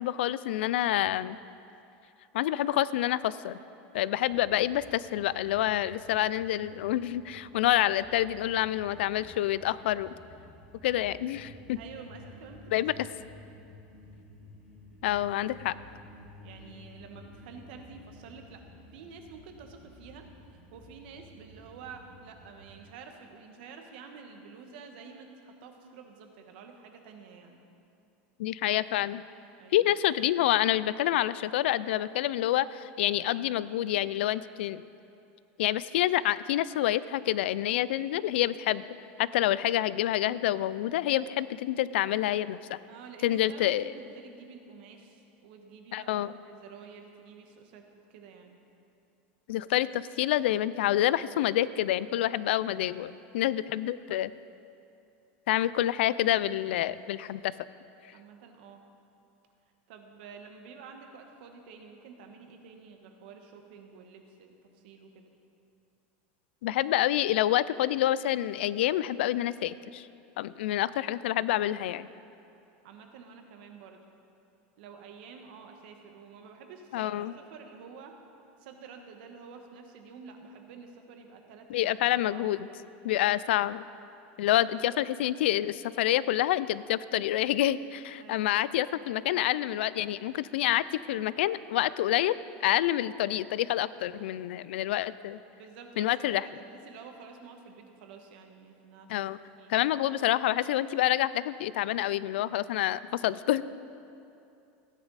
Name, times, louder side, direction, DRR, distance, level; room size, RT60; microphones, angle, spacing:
voice 1, 0.0-1.4 2.3-3.6 3.9-10.1 10.8-11.8 12.7-12.9 15.0-15.7 28.4-29.2 29.7-34.8 35.6-38.8 39.2-42.8 43.2-43.9 45.9-46.3 49.5-54.3 55.5-57.5 66.6-70.1 70.4-72.1 76.9-77.3 81.7-82.7 83.0-83.8 84.4-95.4 96.0-96.5 99.1-99.4 99.7-103.6, left 13 dB, 85° left, 17 dB, 0.4 m, -27 dB
sound 1, 4.3-22.9, left 1 dB, 5° left, 2.6 m, -53 dB
voice 2, 11.8-12.8 16.4-18.6 18.9-27.6 29.6-29.9 42.9-47.8 48.1-48.6 58.1-58.8 59.9-65.3 72.8-74.0 74.8-78.2 78.6-82.5 88.2-88.6 95.6-99.1 99.6-99.7, right 5 dB, 60° right, 4 dB, 1.4 m, -49 dB
16.0 x 10.5 x 4.1 m, 2.7 s
supercardioid pair, 165°, 6 cm